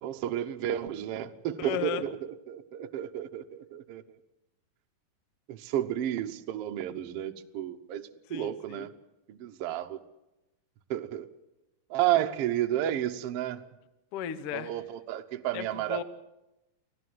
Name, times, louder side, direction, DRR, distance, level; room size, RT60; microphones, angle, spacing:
voice 1, 0.0-4.0 5.5-8.9 9.3-10.0 10.9-11.3 11.9-13.7 14.5-16.0, right 12 dB, 85° right, 6 dB, 1.3 m, -32 dB
voice 2, 1.6-2.0 8.3-8.9 14.1-14.7 15.5-16.0, left 10 dB, 85° left, 13 dB, 1.2 m, -35 dB
24.5 x 16.5 x 7.8 m, 0.94 s
omnidirectional pair, 4.2 m